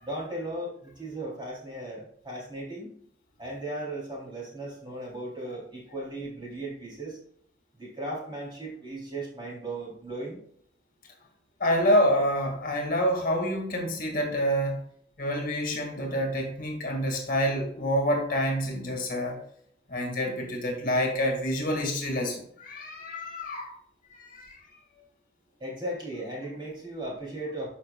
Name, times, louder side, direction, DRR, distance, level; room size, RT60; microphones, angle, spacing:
voice 1, 0.0-2.9 3.4-7.2 7.8-10.4 25.6-27.7, right 1 dB, 25° right, -4 dB, 3.5 m, -36 dB
voice 2, 11.6-14.8 15.2-19.4 19.9-23.7 24.1-24.6, equal, 55° left, 1 dB, 2.3 m, -27 dB
13.0 x 5.7 x 2.4 m, 0.62 s
head